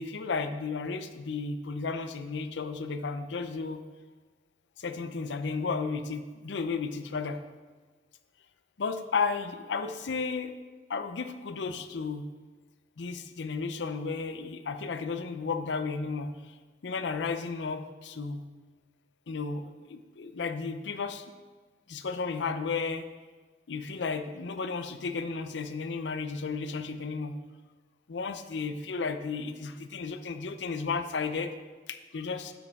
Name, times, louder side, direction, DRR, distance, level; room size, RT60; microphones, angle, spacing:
voice 1, 0.0-3.8 4.8-7.4 8.8-10.5 10.9-12.3 13.0-16.5 16.8-18.5 19.3-21.2 21.9-23.1 23.7-27.4 28.1-31.5 31.9-32.5, left 4 dB, 70° left, 9 dB, 0.5 m, -33 dB
8.4 x 7.2 x 3.5 m, 1.3 s
head